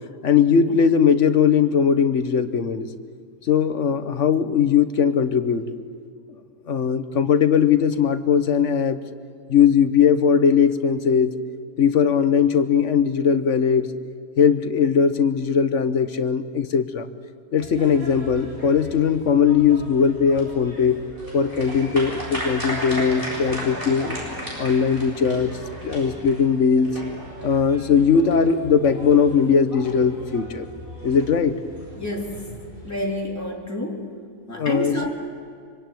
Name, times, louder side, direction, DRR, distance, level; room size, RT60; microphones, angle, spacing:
voice 1, 0.2-2.9 3.5-5.6 6.7-9.0 9.5-11.4 11.8-13.9 14.4-17.1 17.5-21.0 21.3-24.2 24.6-25.5 25.8-27.0 27.4-30.6 31.0-31.6 34.5-35.0, left 7 dB, 50° left, 11 dB, 1.2 m, -19 dB
sound 1, 17.6-33.0, equal, 30° right, 7.8 m, -36 dB
voice 2, 32.0-32.6 32.8-34.2 34.5-35.1, left 1 dB, 10° left, -1 dB, 3.4 m, -29 dB
25.5 x 25.0 x 9.2 m, 2.3 s
omnidirectional pair, 1.8 m